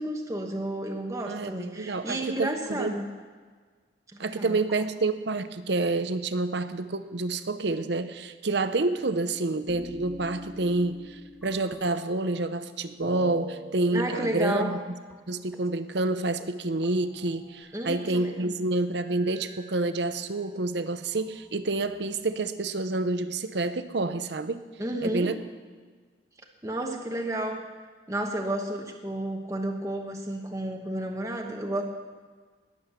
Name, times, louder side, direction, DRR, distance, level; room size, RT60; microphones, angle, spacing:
voice 1, 0.0-3.0 4.1-4.6 13.9-14.8 17.7-18.5 24.8-25.3 26.6-27.7 28.1-31.8, right 1 dB, 15° right, 2 dB, 1.1 m, -31 dB
voice 2, 1.3-3.0 4.2-14.8 15.3-24.6 25.0-25.4, right 2 dB, 65° right, 11 dB, 0.8 m, -28 dB
sound 1, 9.7-12.6 13.0-14.8 15.1-15.2 15.5-15.7 16.0-16.1 16.4-18.1 18.9-20.5 21.2-22.1, equal, 5° left, 2.0 m, -46 dB
20.5 x 7.9 x 6.7 m, 1.5 s
head